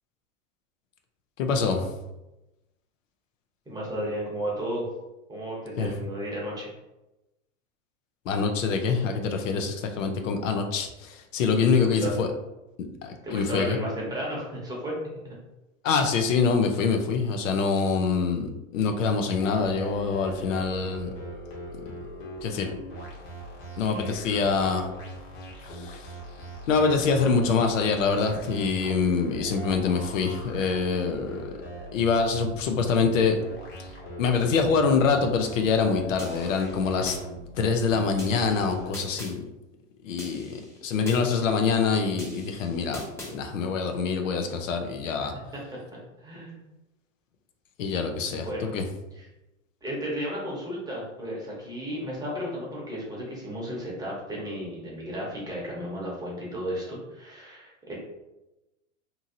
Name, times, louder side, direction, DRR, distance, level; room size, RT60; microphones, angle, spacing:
voice 1, 1.4-1.9 5.8-5.9 8.3-12.3 13.0-13.8 15.8-21.1 22.4-22.7 23.8-24.9 25.7-26.1 26.7-31.4 31.9-33.4 34.2-37.2 37.6-39.4 40.0-43.0 43.3-45.3 47.8-48.8, left 5 dB, 80° left, 5 dB, 0.6 m, -25 dB
voice 2, 3.7-4.9 5.3-6.7 11.8-12.2 13.2-14.9 15.2-15.3 45.2-45.6 46.2-46.6 48.3-48.7 49.2-49.3 49.8-57.9, equal, 10° right, -4 dB, 0.8 m, -34 dB
sound 1, 19.3-38.9, equal, 45° left, 1.0 m, -41 dB
sound 2, 36.2-37.2 38.2-39.3 40.2-41.2 42.2-43.3, left 1 dB, 5° left, 0.5 m, -42 dB
2.8 x 2.7 x 2.5 m, 0.98 s
hypercardioid pair, 115°, 38 cm